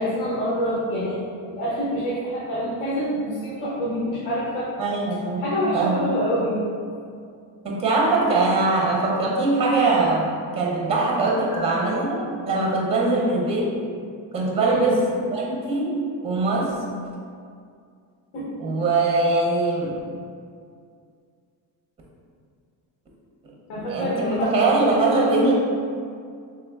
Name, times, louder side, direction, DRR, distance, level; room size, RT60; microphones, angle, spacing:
voice 1, 0.0-4.7 5.4-6.7 11.5-11.6 13.1-13.2 14.6-14.9 18.3-18.5 23.7-25.1, equal, 85° left, -7 dB, 1.1 m, -26 dB
voice 2, 4.8-6.1 7.6-13.7 14.3-15.0 15.3-16.0 16.2-16.8 18.6-19.9 23.4-25.5, right 3 dB, 15° right, -2 dB, 0.5 m, -22 dB
3.4 x 3.2 x 3.4 m, 2.3 s
cardioid pair, 145°, 46 cm